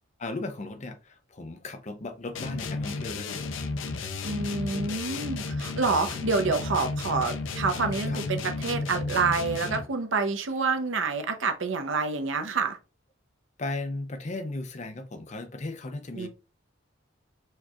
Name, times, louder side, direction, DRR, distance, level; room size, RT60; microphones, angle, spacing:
voice 1, 0.2-3.6 8.1-8.2 13.6-16.3, left 2 dB, 35° left, 0.6 m, -36 dB
sound 1, 2.4-10.0, left 3 dB, 80° left, 0.5 m, -33 dB
voice 2, 4.2-12.8 16.2-16.3, right 4 dB, 75° right, 0.7 m, -28 dB
4.5 x 2.8 x 2.3 m
head